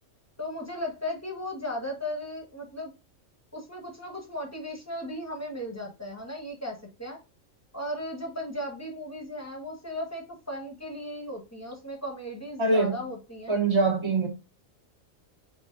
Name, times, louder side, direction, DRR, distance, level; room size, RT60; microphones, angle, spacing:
voice 1, 0.4-2.9 3.5-7.2 7.7-13.6, left 1 dB, 10° left, 1.3 m, -36 dB
voice 2, 12.6-13.1 13.5-14.3, right 3 dB, 25° right, 1.0 m, -23 dB
4.9 x 3.4 x 2.5 m
omnidirectional pair, 1.3 m